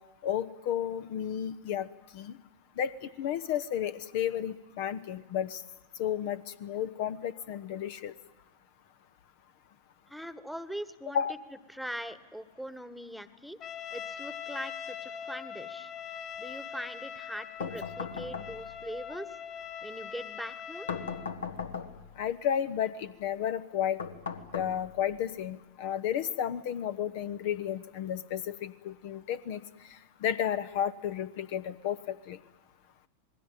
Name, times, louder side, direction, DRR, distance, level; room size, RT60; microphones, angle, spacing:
voice 1, 0.2-1.9 2.1-2.3 2.8-5.6 6.0-8.1 11.1-11.3 22.2-24.0 24.5-29.6 29.9-32.4, left 9 dB, 50° left, 13 dB, 0.9 m, -32 dB
voice 2, 10.1-11.2 11.7-13.6 13.9-15.9 16.4-19.4 19.8-21.0, equal, ahead, 15 dB, 1.4 m, -41 dB
Trumpet, 13.6-21.3, left 8 dB, 30° left, 2.8 m, -42 dB
sound 1, 17.6-18.9 20.9-22.2 24.0-25.2, left 6 dB, 70° left, 1.8 m, -38 dB
27.5 x 20.5 x 9.1 m, 1.1 s
figure-of-eight pair, 90°, 0 cm